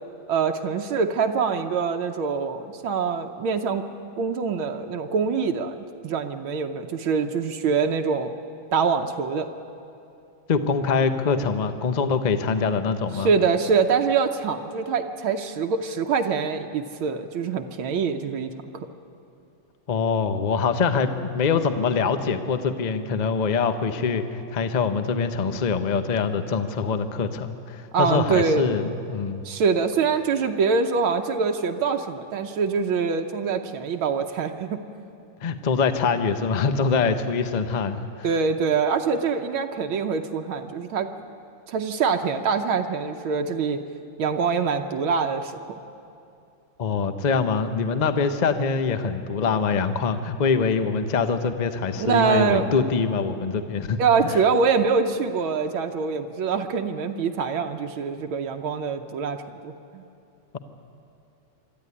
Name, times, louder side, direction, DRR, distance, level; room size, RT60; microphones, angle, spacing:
voice 1, 0.3-3.9 4.2-8.3 8.7-9.5 13.2-18.5 27.9-28.7 29.4-34.8 38.2-41.1 41.7-43.8 44.2-45.8 52.0-52.7 54.0-60.0, right 5 dB, 80° right, 5 dB, 1.7 m, -24 dB
voice 2, 10.5-13.3 19.9-24.3 24.5-29.4 35.4-38.3 46.8-54.4, left 5 dB, 50° left, 9 dB, 0.5 m, -24 dB
25.5 x 13.0 x 9.8 m, 2.6 s
omnidirectional pair, 2.2 m